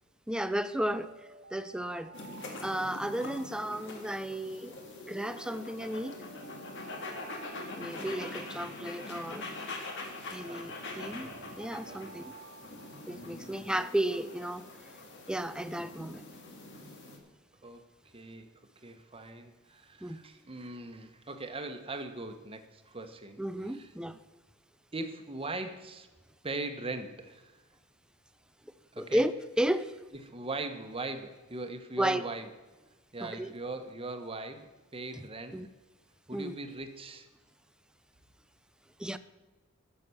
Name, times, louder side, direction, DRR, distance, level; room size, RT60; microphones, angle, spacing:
voice 1, 0.3-1.1 1.5-2.1 2.6-4.8 5.1-6.2 7.7-9.6 10.3-12.3 13.1-14.7 15.3-16.2 20.0-20.2 23.4-24.2 29.0-29.9 32.0-32.2 33.2-33.5 35.1-35.2 35.5-35.7 36.3-36.5 39.0-39.2, right 1 dB, 5° right, 13 dB, 0.4 m, -33 dB
Alarm, 0.7-4.9 5.4-9.9 10.4-14.2, right 4 dB, 50° right, 0.9 m, -54 dB
sound 1, 2.1-17.2, left 2 dB, 60° left, 2.0 m, -44 dB
voice 2, 10.3-11.5 11.9-12.0 17.6-17.8 18.1-18.5 18.8-23.4 23.7-23.9 24.9-26.1 26.4-27.6 28.9-29.2 30.3-32.5 33.1-35.6 36.3-37.3, right 2 dB, 25° right, 7 dB, 1.1 m, -40 dB
12.5 x 6.9 x 6.9 m, 1.2 s
head